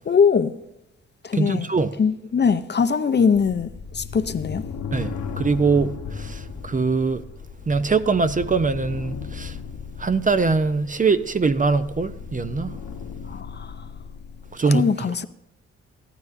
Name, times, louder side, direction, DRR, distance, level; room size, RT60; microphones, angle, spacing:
voice 1, 0.1-0.5 1.2-1.7 2.0-4.6 13.3-13.8 14.7-15.3, left 6 dB, 35° left, 0.6 m, -21 dB
voice 2, 1.3-1.9 4.9-7.2 7.7-9.6 10.0-12.7 14.5-14.9, right 4 dB, 30° right, 0.5 m, -22 dB
sound 1, 3.3-14.6, left 6 dB, 65° left, 1.1 m, -36 dB
14.5 x 12.0 x 2.6 m
cardioid pair, 95°, 29 cm